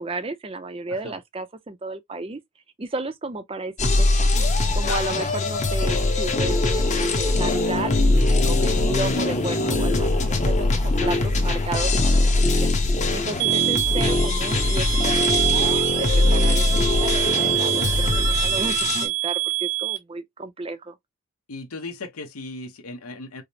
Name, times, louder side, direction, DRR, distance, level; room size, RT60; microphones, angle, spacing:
voice 1, 0.0-2.4 2.8-4.3 4.7-12.7 13.1-21.0, right 2 dB, 25° right, 0.4 m, -33 dB
sound 1, 3.8-19.1, left 2 dB, 30° left, 0.7 m, -21 dB
voice 2, 8.6-8.9 11.0-11.2 12.4-12.7 21.5-23.4, left 3 dB, 80° left, 0.8 m, -37 dB
sound 2, 13.4-20.0, right 22 dB, 65° right, 0.9 m, -25 dB
4.9 x 2.0 x 2.7 m
head